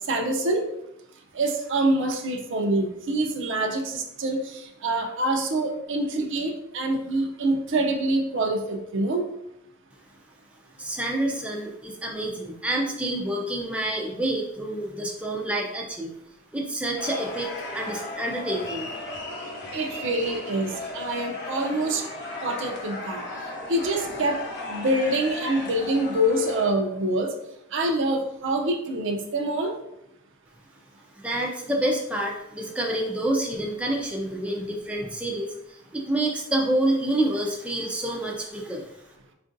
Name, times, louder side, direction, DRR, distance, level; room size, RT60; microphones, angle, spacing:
voice 1, 0.1-0.6 1.3-9.2 19.7-22.0 22.4-23.2 23.7-24.4 24.7-27.3 27.7-29.7, right 1 dB, 65° right, 3 dB, 0.5 m, -25 dB
voice 2, 10.8-16.1 16.5-17.5 17.7-18.9 31.2-38.9, right 1 dB, 5° right, -1 dB, 0.4 m, -28 dB
sound 1, 17.0-26.7, left 2 dB, 55° left, 0.8 m, -36 dB
4.5 x 2.5 x 2.5 m, 0.81 s
head